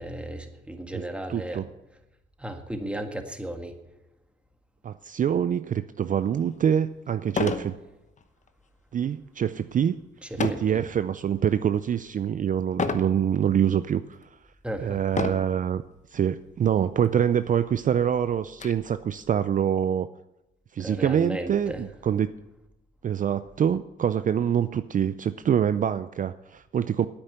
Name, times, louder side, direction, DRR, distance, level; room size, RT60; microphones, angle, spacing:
voice 1, 0.0-1.6 2.4-3.8 10.2-10.6 14.6-15.0 20.8-21.8, right 1 dB, 5° right, 5 dB, 1.7 m, -35 dB
voice 2, 1.3-1.7 4.8-7.8 8.9-10.0 10.4-14.3 14.8-15.8 16.1-20.1 20.7-22.3 23.0-27.1, right 8 dB, 40° right, 12 dB, 0.5 m, -25 dB
sound 1, 6.3-6.4 7.3-7.7 8.2-8.5 10.4-10.8 11.4-11.8 12.8-13.1 13.9-14.0 15.1-15.6 16.6-16.7 17.0-17.1 17.6-18.7, left 4 dB, 35° left, 1.0 m, -30 dB
9.9 x 8.8 x 7.9 m, 0.95 s
cardioid pair, 90°, 20 cm